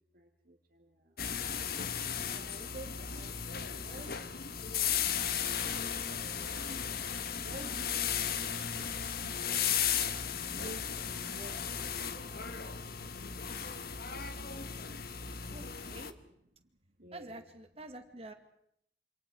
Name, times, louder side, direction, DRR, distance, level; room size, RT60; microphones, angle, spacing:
voice 1, 0.1-1.3 2.1-5.2 6.1-7.0 7.4-9.8 10.5-12.5 16.6-16.7 17.0-17.4, right 1 dB, 50° right, 2 dB, 2.1 m, -52 dB
sound 1, 1.2-16.1, left 8 dB, 55° left, 1.3 m, -35 dB
voice 2, 15.5-16.2 17.1-18.3, right 1 dB, 35° right, 7 dB, 2.2 m, -47 dB
27.5 x 27.0 x 4.8 m, 0.74 s
head